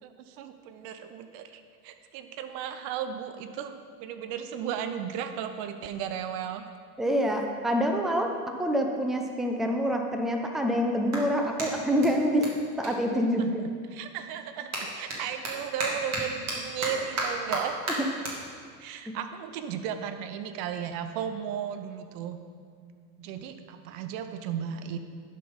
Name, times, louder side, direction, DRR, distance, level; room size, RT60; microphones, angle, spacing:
voice 1, 0.0-6.6 13.4-13.5 13.9-17.8 18.8-22.4 23.2-25.0, right 8 dB, 50° right, 8 dB, 0.7 m, -35 dB
voice 2, 7.0-8.3 8.6-12.5 12.8-13.6 19.1-19.2, equal, ahead, 3 dB, 0.6 m, -26 dB
Clapping, 10.2-13.8 14.1-20.7, right 2 dB, 35° right, 2.3 m, -36 dB
11.0 x 4.2 x 5.4 m, 2.1 s
hypercardioid pair, 95°, 47 cm